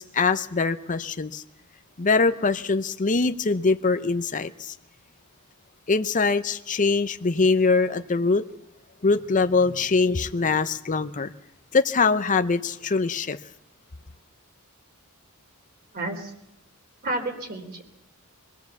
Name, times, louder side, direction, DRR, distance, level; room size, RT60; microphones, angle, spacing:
voice 1, 0.0-1.4 2.0-4.7 5.9-8.4 9.0-11.3 11.7-13.4, left 4 dB, 35° left, 10 dB, 0.7 m, -23 dB
voice 2, 15.9-16.3 17.0-17.8, right 2 dB, 45° right, 4 dB, 3.6 m, -30 dB
24.5 x 17.5 x 7.1 m, 0.82 s
head